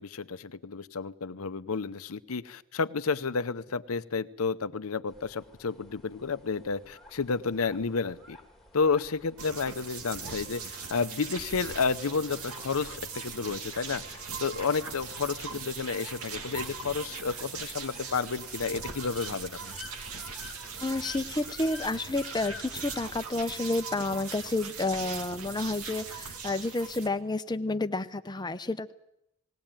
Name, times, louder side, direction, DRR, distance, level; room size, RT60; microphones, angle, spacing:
voice 1, 0.0-8.4 8.7-19.6, left 5 dB, 75° left, 13 dB, 0.7 m, -31 dB
sound 1, 5.1-23.1, left 2 dB, ahead, 2.1 m, -51 dB
sound 2, 9.4-27.1, right 5 dB, 85° right, 2.2 m, -40 dB
voice 2, 20.8-28.9, left 2 dB, 20° left, 10 dB, 0.7 m, -30 dB
19.5 x 17.5 x 8.9 m, 0.82 s
head